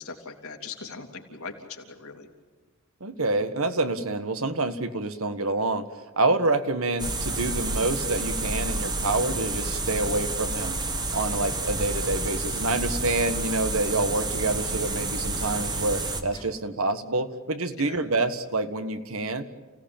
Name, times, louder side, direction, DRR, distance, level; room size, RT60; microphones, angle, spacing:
voice 1, 0.0-2.3 17.8-18.0, left 5 dB, 75° left, 2 dB, 3.0 m, -40 dB
voice 2, 3.0-5.9 6.2-10.8 11.1-19.4, right 2 dB, 70° right, 10 dB, 1.5 m, -27 dB
sound 1, 7.0-16.2, right 2 dB, 20° right, 1.5 m, -29 dB
Sliding door, 12.3-17.0, left 1 dB, 20° left, 1.9 m, -48 dB
29.5 x 17.0 x 8.9 m, 1.3 s
head